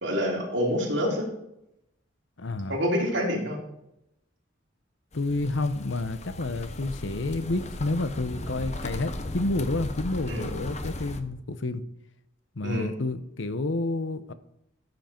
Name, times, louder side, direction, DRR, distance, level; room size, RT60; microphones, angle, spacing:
voice 1, 0.0-1.3 2.7-3.6 10.3-10.5 12.6-12.9, equal, 65° right, -1 dB, 3.7 m, -27 dB
voice 2, 2.4-2.8 5.1-11.8 12.6-14.3, left 2 dB, 75° left, 12 dB, 0.9 m, -29 dB
sound 1, 5.1-11.2, left 1 dB, 35° left, 0.9 m, -37 dB
14.5 x 8.0 x 4.5 m, 0.82 s
head